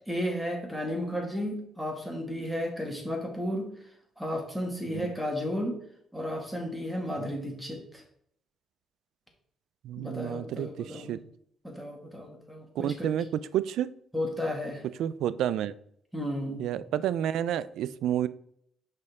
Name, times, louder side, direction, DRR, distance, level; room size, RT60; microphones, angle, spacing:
voice 1, 0.1-3.7 4.2-5.8 6.1-8.0 10.0-11.2 11.6-13.1 14.1-14.8 16.1-16.6, equal, ahead, 1 dB, 2.0 m, -33 dB
voice 2, 9.8-11.2 12.8-13.3 13.5-13.9 15.0-15.7 16.6-18.3, right 11 dB, 80° right, 17 dB, 0.3 m, -30 dB
6.6 x 5.3 x 3.6 m, 0.68 s
cardioid pair, 90°, 0 cm